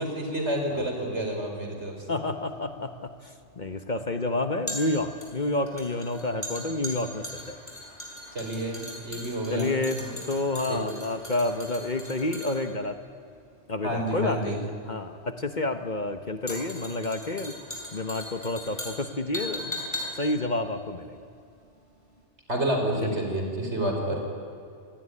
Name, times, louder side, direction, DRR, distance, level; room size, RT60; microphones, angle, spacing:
voice 1, 0.0-1.9 8.3-10.1 10.6-10.8 13.8-14.6 22.5-24.2, right 1 dB, 65° right, 2 dB, 5.1 m, -29 dB
voice 2, 2.1-7.6 9.5-13.0 13.7-17.5 17.9-19.8 20.2-21.2 23.0-23.2 24.0-24.1, left 2 dB, 40° left, 8 dB, 1.2 m, -29 dB
sound 1, 2.5-21.8 22.1-22.2, equal, 25° left, 5.5 m, -39 dB
26.5 x 19.0 x 10.0 m, 2.5 s
omnidirectional pair, 1.3 m